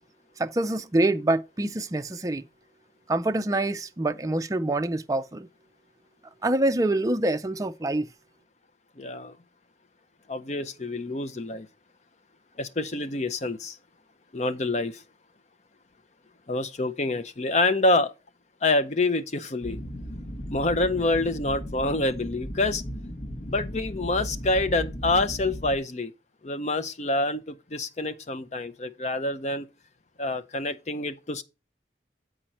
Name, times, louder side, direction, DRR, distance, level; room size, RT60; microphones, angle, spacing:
voice 1, 0.4-2.4 3.1-5.5 6.4-8.1, right 2 dB, 20° right, 0.4 m, -26 dB
voice 2, 9.0-9.4 10.3-11.7 12.6-13.8 14.3-15.0 16.5-18.1 18.6-19.8 20.5-22.8 23.5-26.1 26.4-29.7 30.2-31.4, left 2 dB, 40° left, 0.6 m, -27 dB
sound 1, 19.6-25.8, equal, 60° left, 1.7 m, -36 dB
7.8 x 5.1 x 4.2 m
head